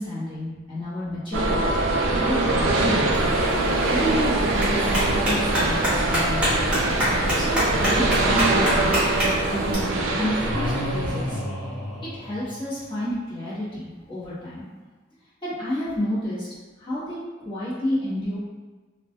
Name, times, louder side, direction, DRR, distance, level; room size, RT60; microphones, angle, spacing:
voice 1, 0.0-3.1 3.9-4.9 5.2-6.8 7.3-9.1 9.3-11.4 12.0-14.6 15.4-16.5 16.8-17.2 17.4-18.4, left 1 dB, 25° left, -12 dB, 1.1 m, -30 dB
sound 1, 1.3-11.4, right 2 dB, 75° right, 0.4 m, -23 dB
Clapping, 3.1-9.7, equal, 5° right, 0.7 m, -27 dB
sound 2, 10.4-12.9, left 1 dB, 80° left, 0.8 m, -31 dB
2.3 x 2.2 x 2.6 m, 1.2 s
head